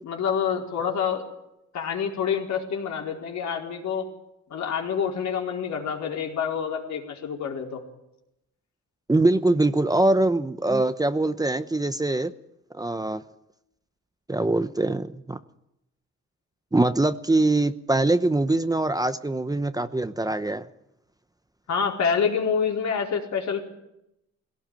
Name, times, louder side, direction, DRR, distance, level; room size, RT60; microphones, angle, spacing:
voice 1, 0.0-1.2 1.7-4.1 4.5-7.8 21.7-23.6, left 6 dB, 65° left, 1 dB, 4.6 m, -27 dB
voice 2, 9.1-12.3 12.7-13.2 14.3-15.4 16.7-20.7, right 2 dB, 10° right, 11 dB, 0.9 m, -23 dB
21.0 x 17.0 x 9.1 m, 0.86 s
cardioid pair, 90°, 30 cm